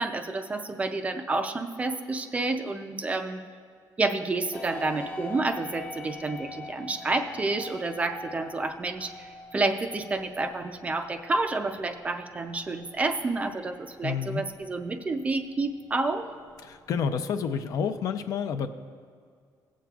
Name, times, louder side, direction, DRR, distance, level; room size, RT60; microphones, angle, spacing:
voice 1, 0.0-3.4 4.0-16.3, right 3 dB, 20° right, 7 dB, 0.4 m, -29 dB
sound 1, 4.5-18.1, left 2 dB, 20° left, 0.7 m, -45 dB
voice 2, 14.0-14.4 16.6-18.7, left 6 dB, 55° left, 9 dB, 0.5 m, -29 dB
18.5 x 7.4 x 2.4 m, 2.1 s
cardioid pair, 170°, 7 cm